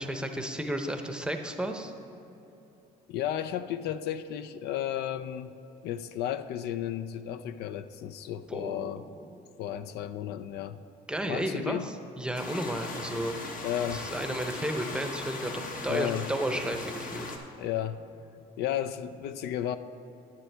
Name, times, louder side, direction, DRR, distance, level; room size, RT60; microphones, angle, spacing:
voice 1, 0.0-1.9 8.5-9.0 9.3-9.4 11.1-13.4 13.9-17.3, right 1 dB, 5° right, 5 dB, 0.7 m, -33 dB
voice 2, 3.1-5.5 5.8-9.0 9.6-10.8 11.3-11.9 13.6-14.4 15.9-16.3 17.6-18.0 18.6-19.8, left 10 dB, 75° left, 12 dB, 0.4 m, -33 dB
sound 1, 12.3-17.4, left 3 dB, 55° left, 1.1 m, -39 dB
10.5 x 9.5 x 3.4 m, 3.0 s
cardioid pair, 110°, 17 cm